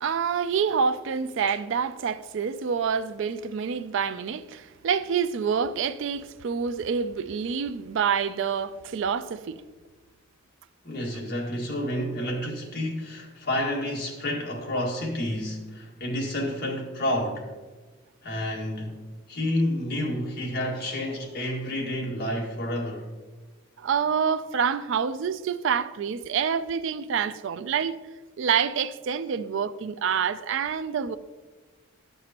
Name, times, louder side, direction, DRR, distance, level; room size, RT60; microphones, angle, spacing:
voice 1, 0.0-9.6 23.8-27.9 28.4-31.2, right 6 dB, 60° right, 0.3 m, -27 dB
voice 2, 10.8-17.5 18.2-23.1, left 1 dB, 45° left, 1.8 m, -30 dB
12.0 x 6.7 x 2.9 m
head